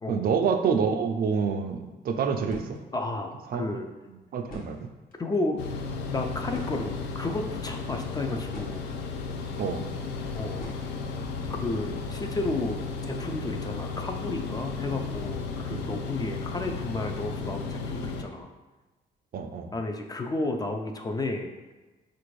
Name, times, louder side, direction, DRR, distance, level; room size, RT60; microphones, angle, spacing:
voice 1, 0.1-2.8 3.5-3.7 4.3-4.8 9.6-9.8 15.7-15.9 19.3-19.7, right 6 dB, 55° right, 6 dB, 0.4 m, -27 dB
sound 1, 2.4-2.8 4.1-4.2 4.4-5.2 6.5-7.3 8.0-9.0 10.6-11.2, left 1 dB, 55° left, 0.8 m, -44 dB
voice 2, 2.9-3.9 5.2-8.9 10.3-10.7 11.6-18.5 19.7-21.5, left 2 dB, 20° left, 4 dB, 0.3 m, -32 dB
sound 2, 5.6-18.2, left 4 dB, 85° left, 0.4 m, -34 dB
4.2 x 2.5 x 3.1 m, 1.2 s
cardioid pair, 105°, 18 cm